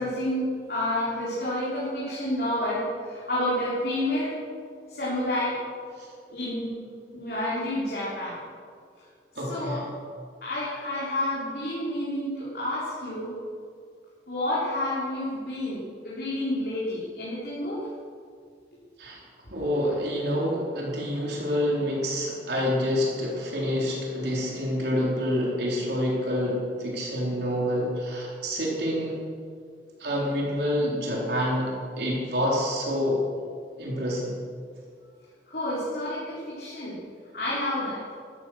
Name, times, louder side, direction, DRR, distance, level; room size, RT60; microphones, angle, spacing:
voice 1, 0.0-4.4 4.9-5.6 6.3-8.4 9.4-9.9 10.4-13.4 14.3-17.9 35.5-37.0 37.3-38.0, left 1 dB, 60° left, -8 dB, 3.8 m, -29 dB
voice 2, 9.4-9.8 19.0-19.2 19.5-29.1 30.0-33.2 33.8-34.4, equal, 70° right, -3 dB, 4.0 m, -27 dB
14.0 x 13.5 x 6.4 m, 2.1 s
head